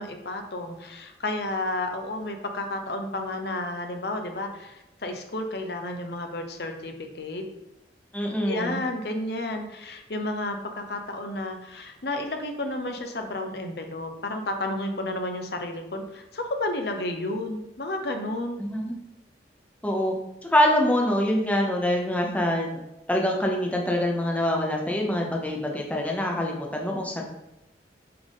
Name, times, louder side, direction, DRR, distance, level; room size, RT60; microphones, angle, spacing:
voice 1, 0.0-7.4 8.4-18.6, left 2 dB, 65° left, 5 dB, 0.8 m, -32 dB
voice 2, 8.1-8.8 18.6-18.9 19.8-20.1 20.4-22.8 23.1-27.2, left 1 dB, 10° left, -1 dB, 0.8 m, -25 dB
7.7 x 3.8 x 3.6 m, 0.91 s
head